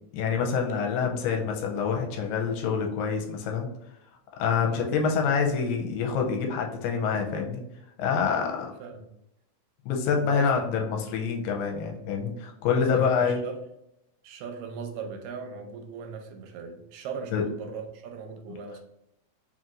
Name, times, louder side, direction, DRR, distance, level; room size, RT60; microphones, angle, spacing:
voice 1, 0.1-3.7 4.4-7.6 8.0-8.7 9.9-13.4 17.3-17.4, left 6 dB, 85° left, 2 dB, 2.3 m, -26 dB
voice 2, 4.7-5.0 8.8-9.1 10.2-10.7 12.8-13.6 14.2-18.8, right 5 dB, 80° right, 5 dB, 2.2 m, -38 dB
5.1 x 2.9 x 2.5 m, 0.81 s
omnidirectional pair, 4.0 m